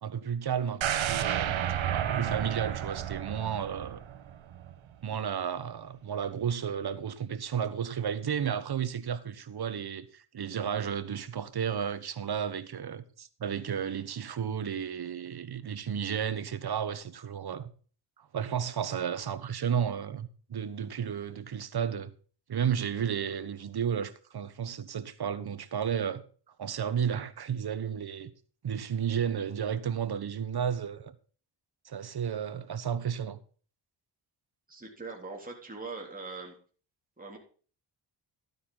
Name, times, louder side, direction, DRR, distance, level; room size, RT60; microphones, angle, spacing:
voice 1, 0.0-4.0 5.0-17.7 18.2-22.1 22.5-26.2 26.6-28.3 28.6-31.1 31.8-33.4, right 8 dB, 55° right, 1.3 m, -33 dB
sound 1, 0.8-4.8 5.1-5.2, right 10 dB, 85° right, 1.2 m, -32 dB
voice 2, 34.7-36.6 37.2-37.4, right 3 dB, 20° right, 3.7 m, -41 dB
12.5 x 9.5 x 4.0 m
cardioid pair, 85°, 46 cm